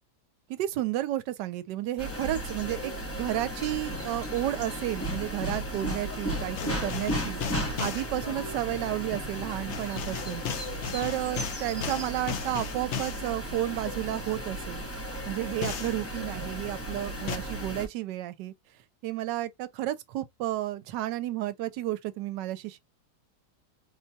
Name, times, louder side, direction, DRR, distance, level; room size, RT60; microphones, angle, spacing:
voice 1, 0.5-7.4 7.8-10.4 10.9-14.9 15.3-18.5 19.0-22.8, right 14 dB, 80° right, 1.2 m, -32 dB
sound 1, 2.0-17.9, equal, 25° left, 0.3 m, -35 dB
sound 2, 6.5-8.1 9.7-13.3 15.6-16.0 17.3-17.4, left 7 dB, 75° left, 0.6 m, -35 dB
4.3 x 2.2 x 2.6 m
omnidirectional pair, 1.9 m